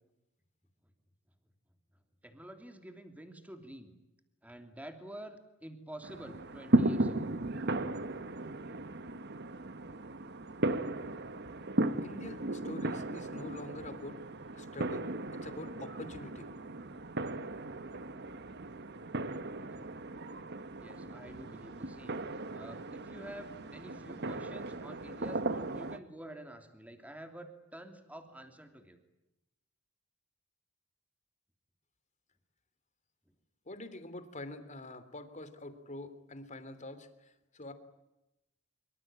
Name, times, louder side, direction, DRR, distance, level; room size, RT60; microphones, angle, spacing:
voice 1, 2.2-3.9 4.4-7.3 20.8-22.2 22.5-29.0, right 1 dB, 10° right, 6 dB, 3.1 m, -48 dB
sound 1, 6.0-26.0, right 2 dB, 55° right, 1.3 m, -36 dB
voice 2, 12.0-14.2 14.5-16.5 33.7-37.7, left 2 dB, 35° left, 11 dB, 3.1 m, -46 dB
25.5 x 25.0 x 9.0 m, 0.91 s
head